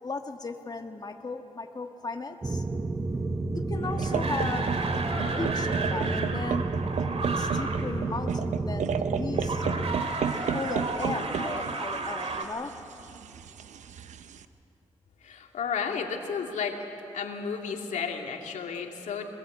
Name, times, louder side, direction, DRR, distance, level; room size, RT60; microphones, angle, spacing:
voice 1, 0.0-2.6 3.7-4.7 5.2-6.7 7.3-9.9 10.3-12.7, left 3 dB, 35° left, 5 dB, 1.6 m, -36 dB
sound 1, 2.4-10.0, right 2 dB, 25° right, 1.0 m, -31 dB
sound 2, 3.7-8.0 9.3-12.5, right 3 dB, 55° right, 2.5 m, -33 dB
sound 3, 4.0-14.4, right 7 dB, 75° right, 0.9 m, -33 dB
voice 2, 15.2-16.8 17.1-19.2, left 6 dB, 80° left, 2 dB, 2.5 m, -32 dB
22.0 x 21.5 x 8.4 m, 3.0 s
cardioid pair, 60°, 12 cm